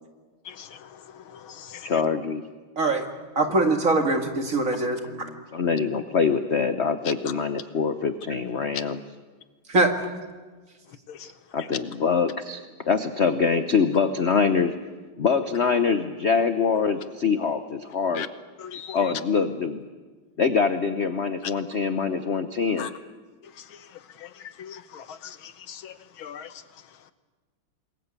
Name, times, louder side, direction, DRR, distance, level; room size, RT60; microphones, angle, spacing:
voice 1, 1.8-2.4 5.0-9.0 11.5-14.7 15.2-18.3 18.9-19.8 20.4-22.9, left 5 dB, 45° left, 9 dB, 0.9 m, -24 dB
voice 2, 3.4-5.0 9.7-9.9, right 2 dB, 40° right, 4 dB, 2.4 m, -22 dB
voice 3, 24.6-25.2 25.7-25.9 26.2-26.5, left 8 dB, 75° left, 12 dB, 1.9 m, -37 dB
27.0 x 21.5 x 8.3 m, 1.4 s
omnidirectional pair, 2.3 m